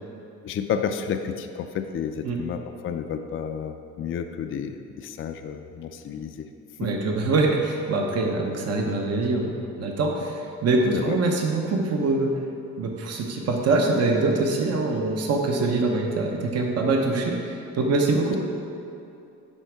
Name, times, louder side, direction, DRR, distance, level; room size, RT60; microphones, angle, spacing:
voice 1, 0.4-6.5 6.8-6.9 10.9-11.2, left 7 dB, 45° left, 7 dB, 0.4 m, -31 dB
voice 2, 6.8-9.5 9.8-12.3 12.8-18.4, right 3 dB, 55° right, 1 dB, 0.9 m, -24 dB
10.0 x 3.6 x 4.6 m, 2.7 s
cardioid pair, 90°, 30 cm